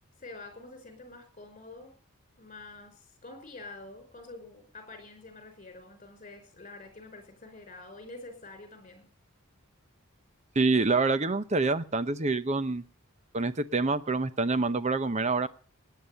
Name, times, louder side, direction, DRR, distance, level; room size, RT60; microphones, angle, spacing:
voice 1, 0.2-1.9 2.4-9.1, left 2 dB, 35° left, 7 dB, 5.3 m, -47 dB
voice 2, 10.5-12.8 13.3-15.5, right 3 dB, 30° right, 14 dB, 0.8 m, -26 dB
18.5 x 9.4 x 6.7 m, 0.41 s
head